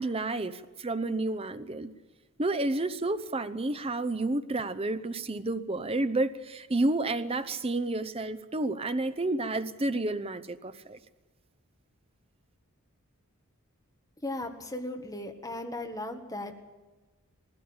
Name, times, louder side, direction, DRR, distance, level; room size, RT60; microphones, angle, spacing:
voice 1, 0.0-1.9 2.4-11.0, right 2 dB, 25° right, 0.7 m, -30 dB
voice 2, 14.2-16.6, left 1 dB, 15° left, 1.6 m, -37 dB
19.5 x 16.0 x 8.7 m
head